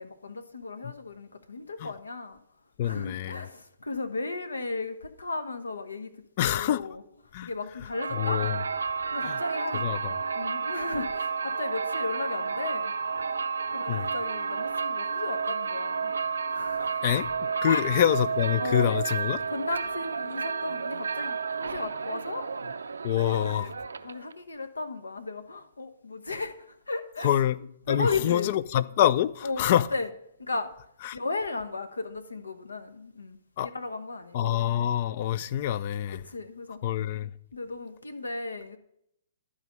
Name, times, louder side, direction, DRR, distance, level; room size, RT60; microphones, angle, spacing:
voice 1, 0.0-2.4 2.8-6.1 6.4-7.0 7.4-8.4 9.1-12.9 13.7-16.1 16.5-17.1 17.7-18.0 18.6-19.0 19.5-22.5 23.2-23.7 24.0-27.4 27.9-28.5 29.4-30.1 30.4-30.7 31.1-34.9 36.1-36.8 37.5-38.8, left 3 dB, 80° left, 1.0 m, -35 dB
voice 2, 2.8-3.5 6.4-6.8 7.3-7.5 8.1-8.6 9.2-9.4 9.8-10.1 13.9-14.1 17.0-17.3 17.6-19.4 23.0-23.7 27.2-27.6 27.9-29.9 31.0-31.2 33.6-33.7 34.3-36.2 36.8-37.3, left 11 dB, 45° left, 0.4 m, -26 dB
sound 1, 7.9-24.3, right 5 dB, 75° right, 0.5 m, -31 dB
11.5 x 4.9 x 5.4 m
figure-of-eight pair, 125°, 0 cm